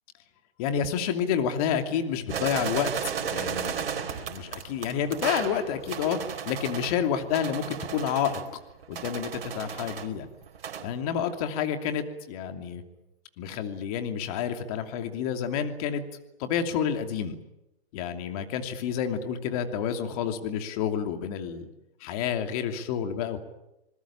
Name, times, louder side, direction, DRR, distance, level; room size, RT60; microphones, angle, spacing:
voice 1, 0.6-6.2 6.5-8.4 8.9-10.3 10.8-12.8 13.4-16.0 16.4-17.4 17.9-21.7 22.0-23.4, left 8 dB, 35° left, 6 dB, 2.8 m, -29 dB
sound 1, 2.3-7.0 7.3-10.1 10.4-10.9, right 7 dB, 65° right, 4.5 m, -34 dB
26.5 x 21.0 x 8.8 m, 0.91 s
hypercardioid pair, 145°, 31 cm